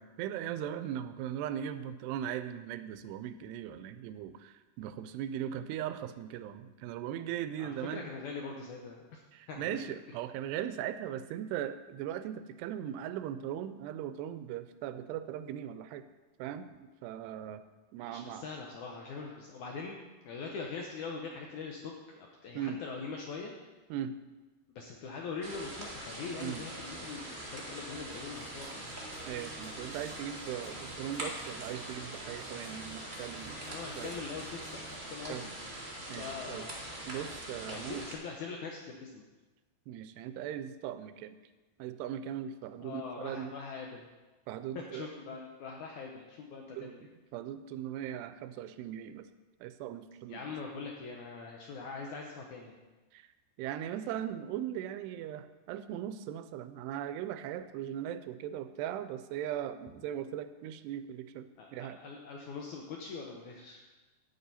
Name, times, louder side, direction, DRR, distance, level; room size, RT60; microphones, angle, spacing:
voice 1, 0.0-8.1 9.3-16.0 16.4-17.6 17.9-18.4 22.5-22.8 23.9-24.2 26.4-26.6 29.3-33.6 34.0-34.1 35.3-35.5 35.8-36.7 37.1-38.1 39.9-41.4 41.8-43.5 44.5-45.1 46.8-49.3 49.6-50.4 53.1-53.3 53.6-62.0, right 10 dB, 90° right, 11 dB, 2.7 m, -39 dB
voice 2, 7.6-9.2 9.5-10.0 18.0-20.0 20.2-23.5 24.8-28.9 33.6-34.8 35.1-35.4 36.0-37.0 37.7-39.2 42.8-44.1 44.8-47.1 50.3-52.8 61.6-63.8, left 4 dB, 80° left, 0 dB, 1.7 m, -42 dB
sound 1, 25.4-38.1, right 1 dB, 30° right, 0.8 m, -43 dB
sound 2, 28.1-35.0, right 2 dB, 35° left, 0.3 m, -52 dB
10.5 x 9.8 x 4.1 m, 1.2 s
omnidirectional pair, 4.7 m